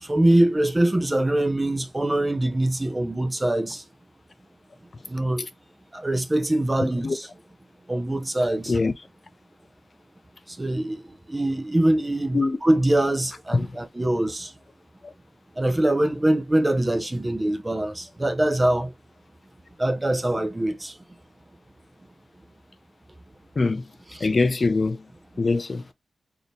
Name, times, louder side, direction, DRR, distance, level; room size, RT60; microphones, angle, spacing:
voice 1, 0.0-3.8 5.0-5.5 5.9-7.3 7.9-8.8 10.5-14.5 15.6-18.9 19.8-21.0 24.1-24.3, right 1 dB, 15° right, 0.6 m, -23 dB
voice 2, 24.2-25.0 25.4-25.8, left 3 dB, 40° left, 0.5 m, -23 dB
4.1 x 2.8 x 3.3 m
wide cardioid pair, 135°, 0 cm